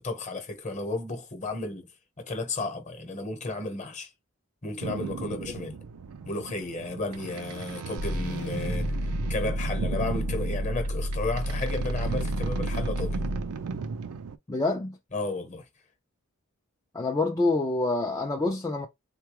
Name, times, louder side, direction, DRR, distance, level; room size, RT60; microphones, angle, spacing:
voice 1, 0.0-1.9 2.2-4.1 4.6-5.8 6.2-13.3 15.1-15.6, left 2 dB, 35° left, 0.9 m, -33 dB
sound 1, 4.8-14.4, right 5 dB, 80° right, 0.4 m, -36 dB
sound 2, 8.0-13.6, equal, 85° left, 0.8 m, -31 dB
voice 2, 14.5-15.0 16.9-18.9, left 2 dB, 15° left, 0.3 m, -26 dB
3.6 x 2.2 x 3.0 m
head